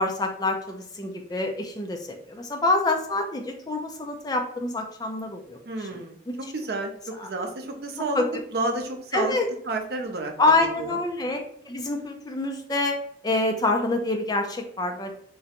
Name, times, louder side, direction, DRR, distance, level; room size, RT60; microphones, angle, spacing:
voice 1, 0.0-6.3 7.2-7.3 8.0-8.2 9.1-9.5 10.4-13.0 13.2-15.1, left 2 dB, 20° left, 4 dB, 0.4 m, -26 dB
voice 2, 5.7-6.2 6.5-8.2 8.5-9.4 9.7-10.3 10.8-11.0, right 2 dB, 55° right, 3 dB, 0.5 m, -30 dB
3.8 x 2.2 x 2.8 m, 0.66 s
head